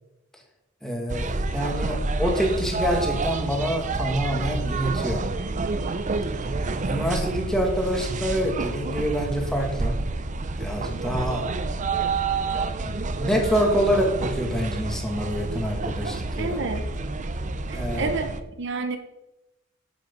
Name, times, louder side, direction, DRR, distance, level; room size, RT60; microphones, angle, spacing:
voice 1, 0.8-5.2 6.8-10.0 10.6-11.4 12.8-16.6 17.7-18.2, equal, 5° left, 0 dB, 1.8 m, -26 dB
sound 1, 1.1-18.4, right 3 dB, 40° right, 0.6 m, -29 dB
voice 2, 16.4-16.8 17.7-18.3 18.6-19.0, right 3 dB, 60° right, 7 dB, 0.9 m, -29 dB
10.5 x 6.3 x 5.4 m, 0.95 s
head